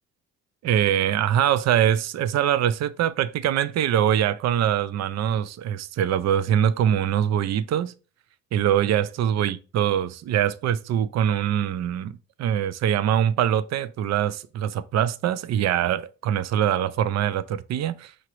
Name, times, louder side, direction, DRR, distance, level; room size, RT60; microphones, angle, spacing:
voice 1, 0.6-7.9 8.5-18.3, right 10 dB, 60° right, 0.5 m, -23 dB
5.0 x 2.9 x 3.0 m
cardioid pair, 90°, 30 cm